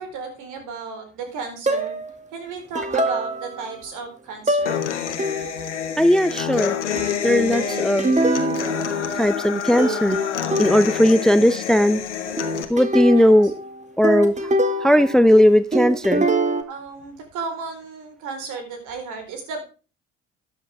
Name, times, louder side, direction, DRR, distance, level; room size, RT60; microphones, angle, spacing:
voice 1, 0.0-2.0 2.3-4.8 7.4-7.9 10.8-11.0 13.1-13.3 16.7-19.6, right 4 dB, 65° right, 6 dB, 4.3 m, -34 dB
sound 1, 1.7-2.1 2.8-3.7 4.5-4.8 5.2-5.7 7.0-9.5 9.8-11.2 12.4-15.4 15.7-16.6, right 1 dB, 20° right, 2.0 m, -24 dB
Human voice / Acoustic guitar, 4.7-12.6, left 8 dB, 85° left, 1.3 m, -27 dB
voice 2, 6.0-6.7 7.2-8.1 9.2-10.2 10.6-12.0 12.7-13.5 14.0-14.3 14.8-16.3, equal, ahead, 16 dB, 0.6 m, -17 dB
13.0 x 9.7 x 3.4 m, 0.33 s
hypercardioid pair, 55°, 34 cm